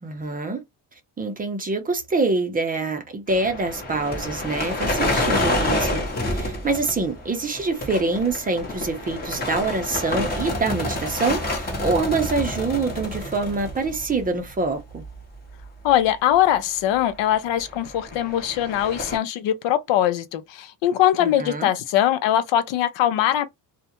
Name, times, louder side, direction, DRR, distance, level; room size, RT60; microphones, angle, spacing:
voice 1, 0.0-0.6 1.2-15.0 21.2-21.7, right 3 dB, 20° right, 0.5 m, -25 dB
sound 1, 3.3-14.6 14.9-15.2 15.6-15.7 17.3-19.2, left 1 dB, 20° left, 0.8 m, -28 dB
voice 2, 15.8-23.5, left 11 dB, 80° left, 0.6 m, -21 dB
2.3 x 2.1 x 2.8 m
cardioid pair, 140°, 44 cm